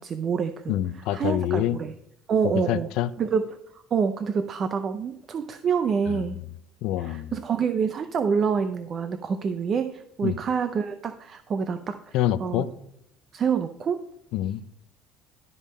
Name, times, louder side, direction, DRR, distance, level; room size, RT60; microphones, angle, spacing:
voice 1, 0.0-0.7 1.1-1.9 2.3-2.9 3.2-3.5 3.7-6.4 7.0-12.6 13.3-14.0, right 6 dB, 35° right, 9 dB, 0.5 m, -27 dB
voice 2, 0.7-1.8 2.4-3.1 6.1-6.2 6.8-7.3 10.2-10.4 12.1-12.7 14.3-14.6, left 13 dB, 70° left, 13 dB, 0.5 m, -26 dB
12.0 x 5.4 x 4.2 m, 0.75 s
cardioid pair, 125°, 0 cm